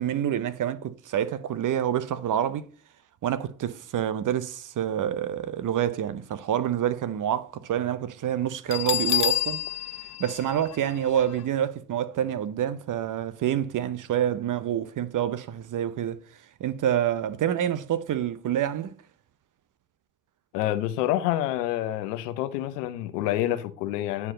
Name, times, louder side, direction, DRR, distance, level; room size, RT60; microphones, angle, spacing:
voice 1, 0.0-2.7 3.2-9.6 10.2-16.2 16.6-18.9, right 10 dB, 40° right, 0.9 m, -27 dB
Bell, 8.7-11.4, left 12 dB, 35° left, 0.8 m, -29 dB
voice 2, 20.5-24.3, left 13 dB, 85° left, 1.0 m, -27 dB
9.6 x 4.7 x 3.8 m
hypercardioid pair, 75°, 47 cm